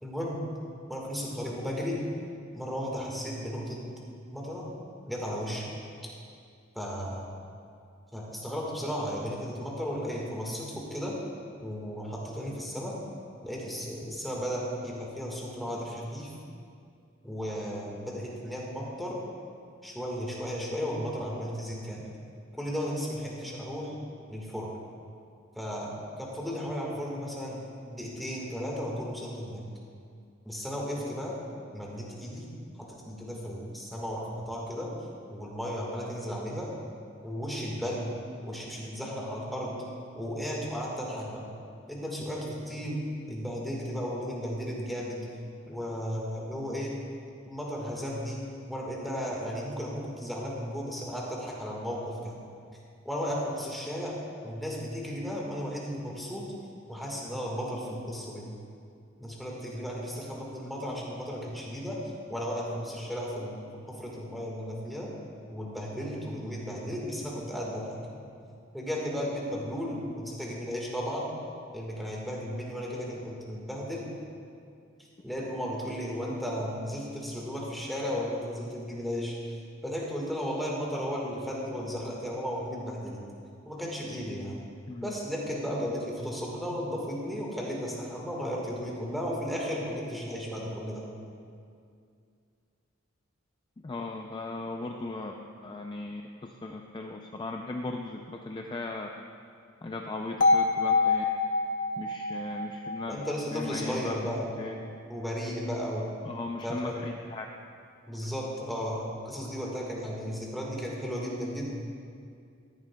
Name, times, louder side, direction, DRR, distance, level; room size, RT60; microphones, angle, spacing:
voice 1, 0.0-0.4 0.9-2.0 2.5-3.8 4.3-4.6 5.1-5.7 6.7-7.2 8.1-11.1 11.6-13.0 13.4-16.3 17.2-19.2 19.8-22.1 22.5-23.9 24.3-24.7 25.5-27.6 27.9-29.7 30.4-31.3 31.7-32.5 32.8-34.9 35.3-36.7 37.2-38.1 38.4-39.8 40.1-41.4 41.9-45.2 45.7-46.9 47.5-48.4 48.7-52.4 53.0-54.1 54.4-56.5 56.9-58.5 59.2-62.0 62.3-65.1 65.5-68.2 68.7-71.3 71.7-74.1 75.2-79.6 79.8-83.2 83.6-84.6 85.0-91.1 103.1-104.5 105.1-106.2 106.6-107.0 108.1-111.7, equal, ahead, -4 dB, 1.5 m, -34 dB
voice 2, 93.8-95.4 95.6-99.1 99.8-101.2 102.0-103.2 103.5-104.3 104.6-104.7 106.2-107.5, left 2 dB, 25° left, 2 dB, 0.3 m, -37 dB
sound 1, 100.4-104.4, left 3 dB, 65° left, 0.8 m, -27 dB
14.0 x 10.5 x 2.2 m, 2.3 s
head